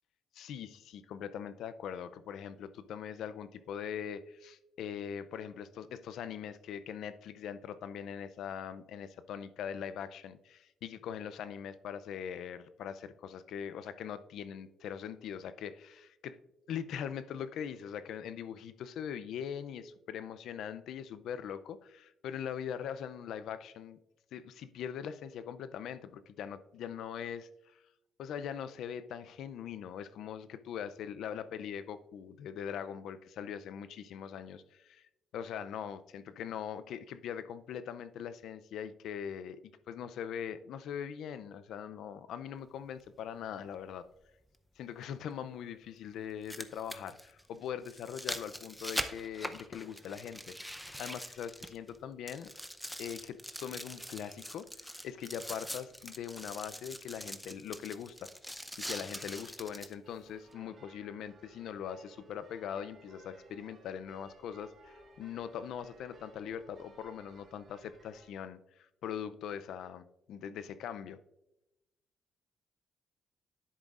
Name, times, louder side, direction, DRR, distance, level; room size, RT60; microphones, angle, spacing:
voice 1, 0.3-16.4 16.7-24.0 24.3-27.8 28.2-44.1 44.8-52.5 53.0-58.3 58.8-71.2, left 8 dB, 80° left, 13 dB, 0.4 m, -41 dB
sound 1, 43.0-43.1 45.0-45.1 46.2-52.0 52.3-59.9 60.5-60.6, equal, ahead, 0.7 m, -43 dB
sound 2, 60.0-68.3, right 3 dB, 50° right, 2.6 m, -58 dB
10.0 x 7.9 x 2.5 m, 0.92 s
cardioid pair, 90°, 0 cm